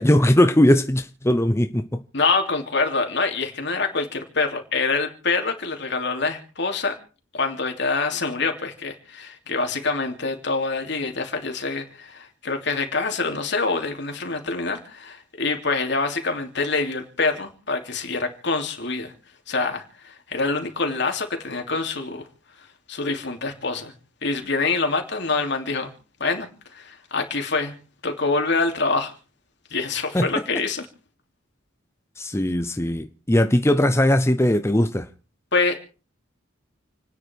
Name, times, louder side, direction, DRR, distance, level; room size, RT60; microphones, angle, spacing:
voice 1, 0.0-2.0 30.1-30.3 32.2-35.1, left 1 dB, 15° left, 0.8 m, -19 dB
voice 2, 2.1-7.0 7.3-19.1 19.5-22.2 22.6-23.9 24.2-25.9 26.2-29.1 29.7-30.8 33.7-33.8 35.5-35.8, left 3 dB, 60° left, 3.0 m, -25 dB
29.5 x 9.9 x 4.6 m
head